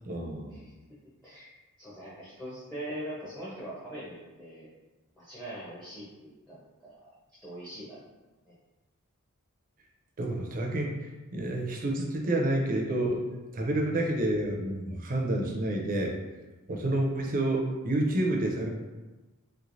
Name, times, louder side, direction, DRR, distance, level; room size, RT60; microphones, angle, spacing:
voice 1, 0.1-0.6 10.2-10.9 11.3-13.3 13.5-16.1 16.7-18.7, right 1 dB, 40° right, 1 dB, 0.5 m, -29 dB
voice 2, 1.8-4.7 5.2-7.1 7.4-8.0 8.5-8.6, right 1 dB, 5° left, -8 dB, 0.7 m, -42 dB
3.2 x 3.1 x 2.6 m, 1.2 s
head